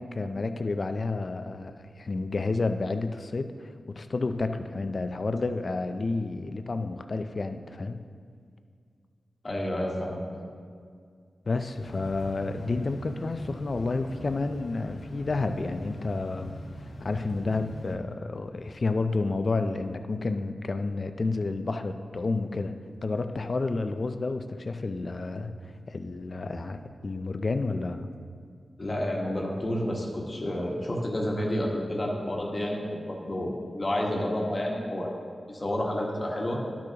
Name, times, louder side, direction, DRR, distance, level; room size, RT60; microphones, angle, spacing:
voice 1, 0.0-3.5 3.9-8.0 11.5-16.5 17.0-22.7 23.0-25.6 25.9-28.1, left 3 dB, 50° left, 9 dB, 0.4 m, -30 dB
voice 2, 9.4-10.4 28.8-35.1 35.5-36.6, left 1 dB, 35° left, -1 dB, 1.3 m, -30 dB
sound 1, 11.8-18.0, equal, 85° left, 1.0 m, -42 dB
12.0 x 6.2 x 2.9 m, 2.1 s
wide cardioid pair, 80°, 0 cm